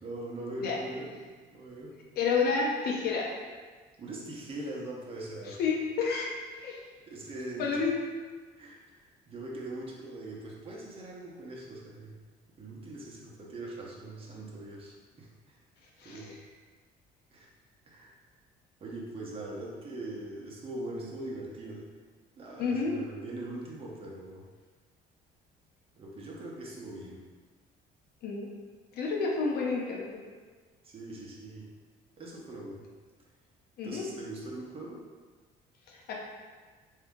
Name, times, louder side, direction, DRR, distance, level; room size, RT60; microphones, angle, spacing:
voice 1, 0.0-1.2 1.5-2.0 4.0-5.6 7.1-7.8 8.6-12.1 12.6-15.6 16.0-16.3 17.3-17.5 17.9-18.1 18.8-21.8 22.4-24.4 25.9-27.2 30.8-31.6 32.2-32.9 33.8-35.0, right 2 dB, 35° right, -4 dB, 0.9 m, -41 dB
voice 2, 2.2-3.3 5.6-6.3 6.6-6.8 7.6-7.9 16.0-16.4 22.6-22.9 28.2-28.5 28.9-30.0 33.8-34.1 35.9-36.1, left 5 dB, 70° left, -1 dB, 0.8 m, -29 dB
3.6 x 2.8 x 3.6 m, 1.4 s
cardioid pair, 110°, 17 cm